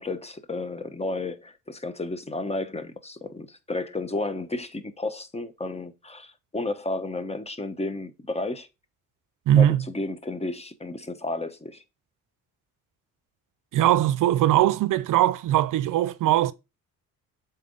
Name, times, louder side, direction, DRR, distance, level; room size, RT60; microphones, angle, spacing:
voice 1, 0.0-8.7 9.5-11.8, left 2 dB, 20° left, 1.0 m, -32 dB
voice 2, 9.5-9.8 13.7-16.5, right 12 dB, 65° right, 0.5 m, -20 dB
7.5 x 4.2 x 3.8 m
cardioid pair, 75°, 34 cm